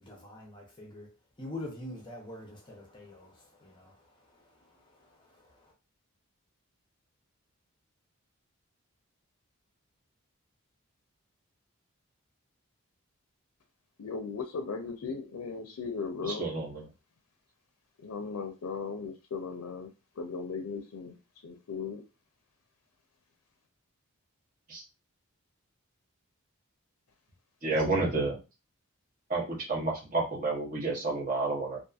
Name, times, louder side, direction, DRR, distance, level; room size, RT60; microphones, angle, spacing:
voice 1, 0.0-1.1 1.4-5.7, left 1 dB, 20° left, 0.6 m, -45 dB
voice 2, 14.0-16.5 18.0-19.9 20.2-21.1 21.4-22.0, left 5 dB, 85° left, 0.4 m, -37 dB
voice 3, 16.2-16.9 24.7-24.8 27.6-28.4 29.3-31.8, right 3 dB, 35° right, 0.8 m, -30 dB
2.6 x 2.4 x 2.3 m
head